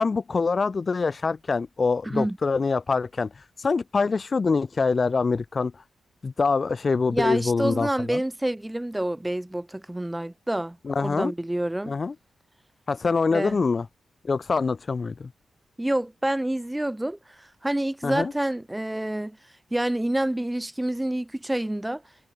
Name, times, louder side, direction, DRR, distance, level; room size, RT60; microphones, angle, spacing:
voice 1, 0.0-3.3 3.6-5.7 6.2-8.2 10.8-11.3 11.9-12.1 12.9-13.9 14.2-15.3 18.0-18.3, left 4 dB, 45° left, 1.0 m, -24 dB
voice 2, 2.0-2.4 7.1-10.8 11.0-11.9 13.3-13.6 15.8-19.4 19.7-22.0, right 1 dB, 10° right, 2.6 m, -28 dB
cardioid pair, 60°, 0 cm